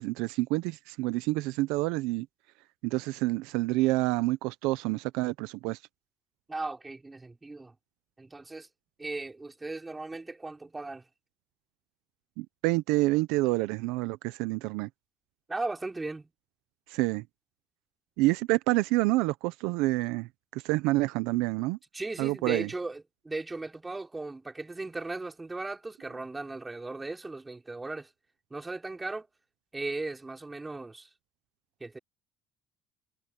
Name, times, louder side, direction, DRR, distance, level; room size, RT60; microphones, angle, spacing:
voice 1, 0.0-2.3 2.8-5.8 12.4-14.9 16.9-17.2 18.2-21.8 22.2-22.7, right 20 dB, 85° right, 0.8 m, -28 dB
voice 2, 6.5-7.7 8.2-8.7 9.0-11.0 15.5-16.3 21.9-28.1 28.5-29.3 29.7-31.1 31.8-32.0, right 3 dB, 15° right, 6.2 m, -37 dB
supercardioid pair, 90°, 0 cm